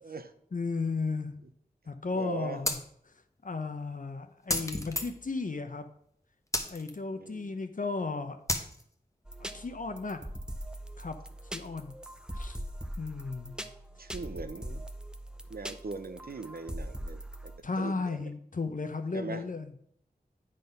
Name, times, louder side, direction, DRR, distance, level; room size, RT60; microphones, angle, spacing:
voice 1, 0.0-0.3 2.1-2.6 7.1-7.5 14.0-14.9 15.5-17.5 17.8-18.3 19.1-19.4, right 4 dB, 65° right, 11 dB, 0.7 m, -40 dB
voice 2, 0.5-1.3 1.9-2.8 3.4-5.8 6.7-8.4 9.4-10.2 11.0-11.2 11.5-11.9 12.4-12.6 13.0-13.5 17.6-19.8, left 3 dB, 55° left, 7 dB, 0.6 m, -34 dB
sound 1, 2.7-2.8 4.5-5.4 6.5-6.9 8.5-8.8, left 1 dB, 20° left, 0.9 m, -31 dB
sound 2, 9.3-17.6, equal, 5° right, 0.6 m, -41 dB
8.9 x 3.9 x 5.3 m, 0.68 s
wide cardioid pair, 50°, 16 cm